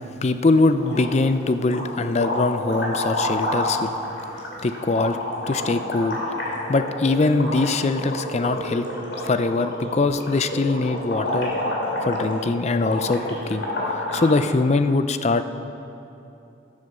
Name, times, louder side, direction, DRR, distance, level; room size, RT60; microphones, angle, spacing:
voice 1, 0.2-3.9 4.6-5.2 5.5-6.2 6.7-8.9 9.2-11.5 12.0-13.6 14.1-15.4, left 3 dB, 35° left, 10 dB, 0.4 m, -22 dB
sound 1, 0.7-1.3 1.6-14.3, left 1 dB, 70° left, 2.8 m, -29 dB
10.5 x 9.7 x 6.7 m, 2.9 s
head